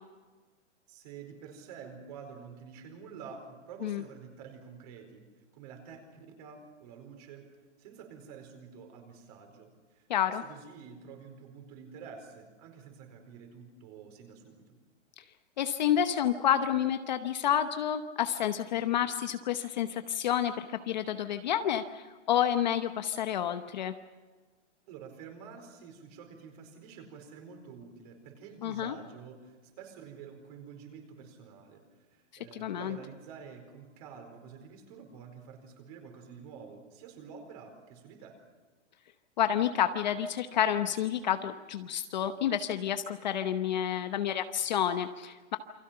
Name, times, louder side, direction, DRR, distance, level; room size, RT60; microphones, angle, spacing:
voice 1, 0.9-5.2 5.5-6.0 6.4-7.5 7.8-14.7 24.9-31.8 32.1-38.3, right 6 dB, 30° right, 5 dB, 4.5 m, -49 dB
voice 2, 10.1-10.4 15.6-23.9 28.6-29.0 32.5-33.0 39.4-45.6, left 10 dB, 35° left, 9 dB, 0.9 m, -29 dB
28.5 x 24.5 x 5.7 m, 1.3 s
hypercardioid pair, 175°, 37 cm